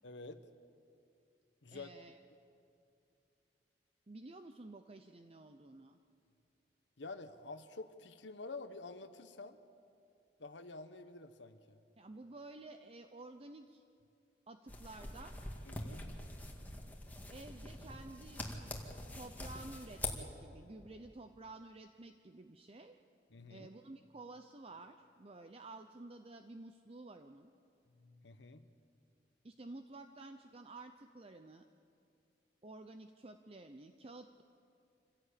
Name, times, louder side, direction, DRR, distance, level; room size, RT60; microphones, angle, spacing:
voice 1, 0.0-0.4 1.6-1.9 7.0-9.6 10.4-11.8 15.6-16.2 23.3-23.7 27.9-28.7, left 3 dB, 85° left, 9 dB, 1.1 m, -49 dB
voice 2, 1.7-2.2 4.1-6.0 12.0-13.8 14.5-15.4 17.3-18.4 19.1-23.0 23.5-27.5 29.4-31.6 32.6-34.4, right 2 dB, 35° right, 7 dB, 0.7 m, -52 dB
sound 1, 14.7-20.1, left 1 dB, 10° left, 2.1 m, -44 dB
27.0 x 16.0 x 8.6 m, 2.5 s
head